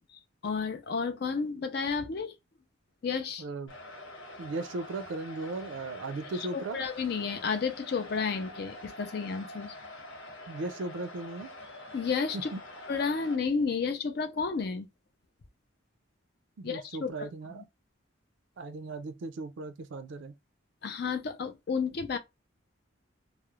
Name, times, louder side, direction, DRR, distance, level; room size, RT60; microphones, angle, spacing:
voice 1, 0.1-2.3 3.0-3.4 6.4-9.7 11.9-12.5 12.9-14.9 16.6-17.3 17.5-17.6 20.8-22.2, left 5 dB, 50° left, 0.4 m, -32 dB
voice 2, 3.4-3.7 4.4-6.8 10.5-11.5 12.3-12.6 16.6-17.6 18.6-20.3, right 2 dB, 65° right, 0.4 m, -37 dB
sound 1, 3.7-13.4, left 1 dB, 75° left, 1.1 m, -46 dB
2.3 x 2.0 x 2.9 m
head